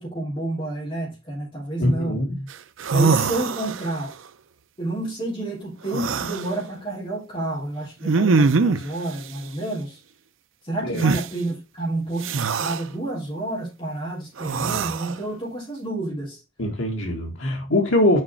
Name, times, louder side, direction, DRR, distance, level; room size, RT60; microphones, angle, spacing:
voice 1, 0.0-2.2 2.9-4.1 4.8-10.0 10.6-16.4, right 2 dB, 25° left, 3.2 m, -29 dB
voice 2, 1.8-2.4 10.8-11.0 16.6-18.2, left 1 dB, 70° left, 1.7 m, -22 dB
sound 1, 2.5-2.6 2.8-4.0 5.9-6.5 8.0-8.9 11.0-11.3 12.2-12.8 14.4-15.2, right 4 dB, 70° right, 0.6 m, -22 dB
6.4 x 4.8 x 4.4 m
head